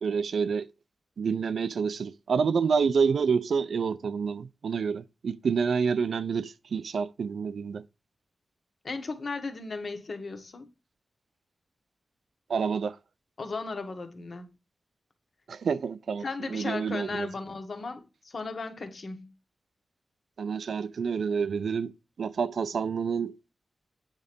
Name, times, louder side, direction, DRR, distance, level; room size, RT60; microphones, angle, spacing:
voice 1, 0.0-0.7 1.2-7.8 12.5-13.0 15.5-16.2 16.5-17.3 20.4-23.4, right 6 dB, 85° right, 0.6 m, -28 dB
voice 2, 8.8-10.7 13.4-14.5 16.2-19.3, left 3 dB, 55° left, 1.7 m, -36 dB
8.9 x 4.7 x 5.3 m
wide cardioid pair, 105°, 0 cm